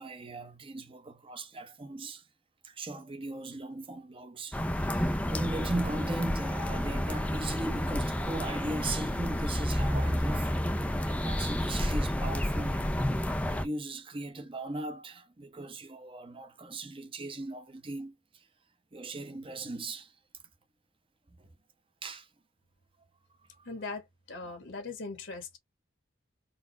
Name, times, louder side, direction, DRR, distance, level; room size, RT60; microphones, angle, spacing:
voice 1, 0.0-2.3 2.6-4.6 4.9-10.5 11.0-12.8 13.5-18.5 18.9-20.1 21.4-21.5 22.0-22.3 23.6-23.7 24.5-24.6, right 2 dB, 25° right, 0.8 m, -38 dB
sound 1, 4.5-13.6, equal, 5° left, 0.4 m, -30 dB
voice 2, 23.6-25.6, left 3 dB, 70° left, 1.4 m, -40 dB
4.0 x 2.4 x 4.0 m
head